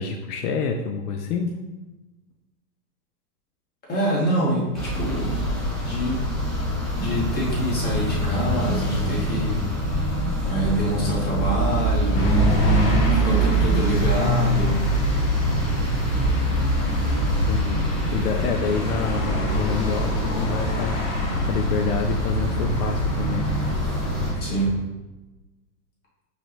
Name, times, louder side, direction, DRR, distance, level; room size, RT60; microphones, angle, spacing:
voice 1, 0.0-1.5 17.5-17.9 18.1-21.0 21.4-23.6, left 5 dB, 70° left, 4 dB, 0.6 m, -27 dB
voice 2, 3.9-5.3 5.8-6.2 7.0-9.7 10.4-12.4 13.1-14.8 24.4-24.8, right 1 dB, 20° left, -5 dB, 1.4 m, -26 dB
sound 1, 4.7-24.3, equal, ahead, 1.2 m, -25 dB
sound 2, 12.1-24.7, equal, 50° left, 1.2 m, -26 dB
4.8 x 3.3 x 3.0 m, 1.1 s
supercardioid pair, 150°, 48 cm